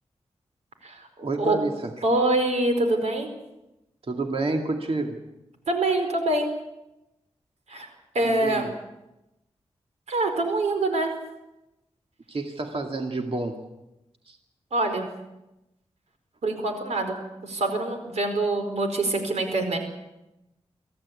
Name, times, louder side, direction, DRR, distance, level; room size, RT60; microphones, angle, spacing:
voice 1, 1.2-1.9 4.1-5.2 8.2-8.7 12.3-13.6 14.3-14.4, right 2 dB, 60° right, 3 dB, 2.3 m, -29 dB
voice 2, 2.0-3.3 5.7-6.5 7.7-7.9 8.1-8.7 10.1-11.1 14.7-15.1 16.4-19.8, right 2 dB, 90° right, 5 dB, 4.7 m, -25 dB
25.0 x 15.5 x 8.4 m, 0.93 s
cardioid pair, 65°, 11 cm